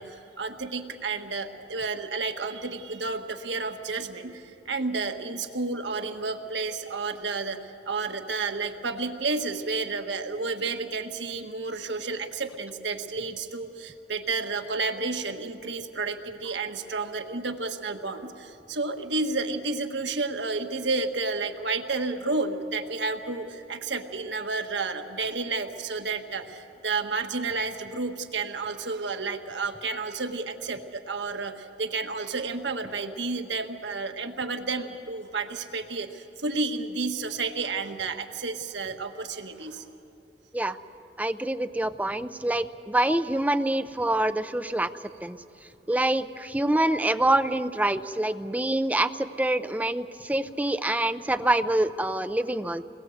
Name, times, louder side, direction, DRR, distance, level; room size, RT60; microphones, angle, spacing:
voice 1, 0.0-7.6 7.9-39.8, right 3 dB, 80° right, 6 dB, 1.5 m, -31 dB
voice 2, 41.2-44.9 45.2-45.4 45.9-52.8, right 1 dB, 10° right, 11 dB, 0.6 m, -26 dB
28.0 x 21.0 x 8.0 m, 2.9 s
head